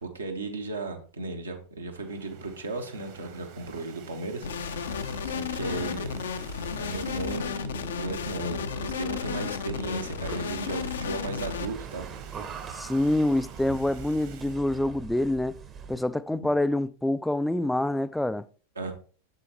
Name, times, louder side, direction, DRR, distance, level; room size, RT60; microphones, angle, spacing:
voice 1, 0.0-4.5 5.2-6.1 6.7-7.7 8.0-12.1 16.3-16.5 18.7-18.9, right 3 dB, 75° right, 1.3 m, -35 dB
sound 1, 1.8-7.6 8.0-8.2 8.4-8.5 9.6-14.6, right 8 dB, 50° right, 1.4 m, -50 dB
sound 2, 4.4-11.7, left 7 dB, 65° left, 0.6 m, -33 dB
sound 3, 4.4-16.1, right 6 dB, 25° right, 0.9 m, -43 dB
voice 2, 12.7-15.5 15.9-18.5, left 1 dB, 5° left, 0.3 m, -26 dB
8.1 x 6.8 x 3.0 m
figure-of-eight pair, 90°, 0 cm